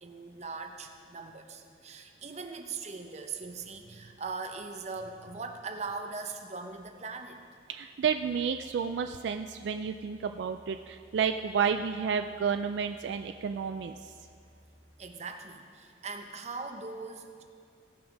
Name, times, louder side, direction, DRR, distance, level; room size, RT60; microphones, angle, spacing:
voice 1, 0.0-7.4 15.0-17.4, right 4 dB, 35° right, 5 dB, 0.7 m, -40 dB
voice 2, 7.7-14.1, right 6 dB, 70° right, 7 dB, 0.3 m, -31 dB
sound 1, 8.0-15.0, equal, 10° right, 1.2 m, -59 dB
16.5 x 6.0 x 5.1 m, 2.2 s
head